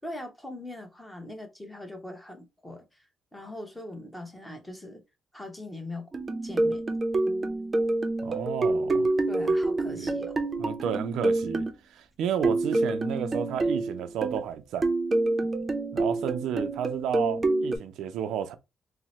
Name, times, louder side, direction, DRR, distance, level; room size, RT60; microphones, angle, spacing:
voice 1, 0.0-3.0 3.3-5.0 5.3-6.1 6.4-6.8 9.3-10.4, left 1 dB, 10° left, 1.0 m, -41 dB
sound 1, 6.1-11.7 12.4-14.5 14.8-17.8, right 2 dB, 30° right, 0.6 m, -27 dB
voice 2, 8.2-9.1 9.9-10.1 10.6-14.9 15.9-18.5, right 8 dB, 80° right, 0.4 m, -32 dB
2.8 x 2.0 x 4.0 m
cardioid pair, 90°, 0 cm